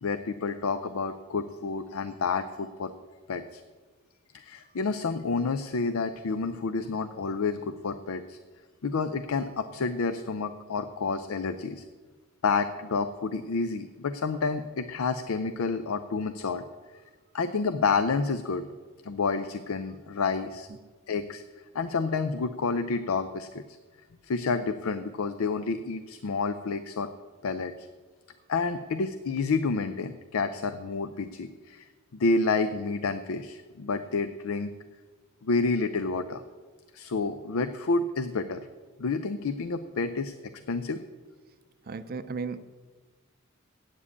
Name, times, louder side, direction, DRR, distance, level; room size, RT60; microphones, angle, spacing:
voice 1, 0.0-2.9 3.3-3.6 4.3-8.4 8.8-11.8 12.4-16.7 17.3-18.6 19.0-20.7 21.1-21.4 21.7-23.6 24.2-27.1 27.4-27.9 28.5-31.8 32.1-34.7 35.4-36.4 36.9-38.7 39.0-40.3 40.7-41.0, left 4 dB, 80° left, 11 dB, 0.5 m, -29 dB
voice 2, 41.9-42.6, right 4 dB, 45° right, 11 dB, 0.5 m, -34 dB
8.4 x 7.4 x 8.3 m, 1.4 s
head